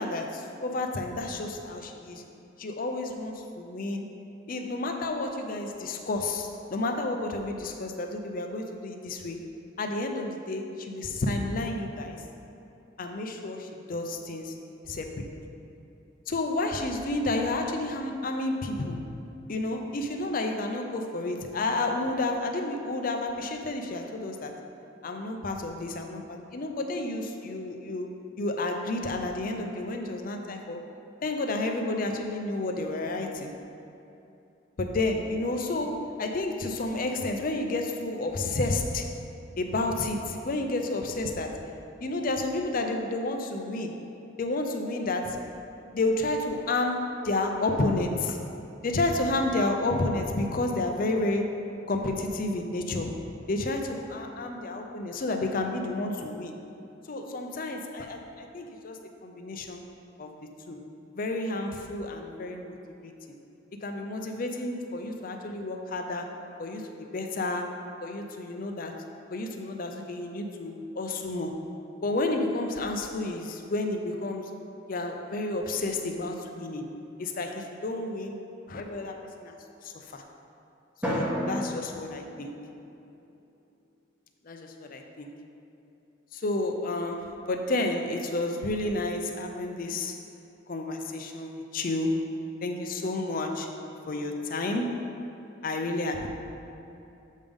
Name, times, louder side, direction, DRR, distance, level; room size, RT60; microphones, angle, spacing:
voice 1, 0.0-2.2 2.6-4.1 4.5-9.5 9.8-12.2 13.0-14.6 14.9-15.5 16.3-19.0 19.5-24.6 25.0-28.1 28.4-30.8 31.2-33.5 34.8-39.1 39.6-41.7 42.0-44.0 44.4-45.4 45.9-48.4 48.8-51.6 51.9-53.2 53.5-56.5 57.1-59.8 60.2-60.8 61.1-62.8 63.0-63.1 63.8-66.3 66.6-69.0 69.3-71.7 72.0-74.5 74.9-76.8 77.2-78.4 78.7-79.5 79.8-80.2 81.0-82.5 84.4-85.3 86.3-90.2 90.7-92.3 92.6-93.7 94.1-95.0 95.6-96.3, left 2 dB, 45° left, 4 dB, 0.5 m, -31 dB
Drum, 81.0-83.3, equal, 5° right, 1.1 m, -33 dB
7.3 x 3.5 x 5.2 m, 2.8 s
head